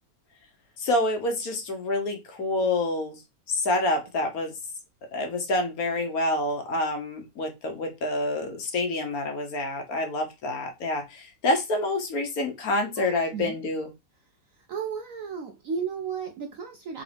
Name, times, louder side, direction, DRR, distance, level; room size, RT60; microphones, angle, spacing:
voice 1, 0.8-3.2 3.5-4.5 5.1-13.9, left 2 dB, 60° left, 4 dB, 1.3 m, -27 dB
voice 2, 13.0-13.6 14.6-17.0, right 6 dB, 65° right, 5 dB, 0.8 m, -34 dB
3.9 x 3.8 x 3.3 m, 0.24 s
omnidirectional pair, 1.9 m